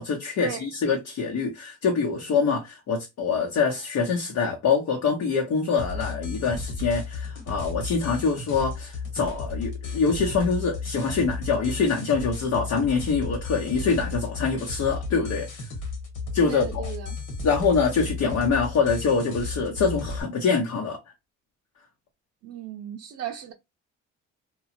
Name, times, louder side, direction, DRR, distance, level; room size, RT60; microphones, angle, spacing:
voice 1, 0.0-15.7 16.3-16.9 17.4-21.1, left 5 dB, 65° left, 0.8 m, -25 dB
sound 1, 5.8-20.2, left 4 dB, 80° left, 1.3 m, -34 dB
voice 2, 16.5-17.2 22.4-23.5, right 9 dB, 60° right, 0.6 m, -36 dB
2.9 x 2.3 x 2.5 m
cardioid pair, 90°, 30 cm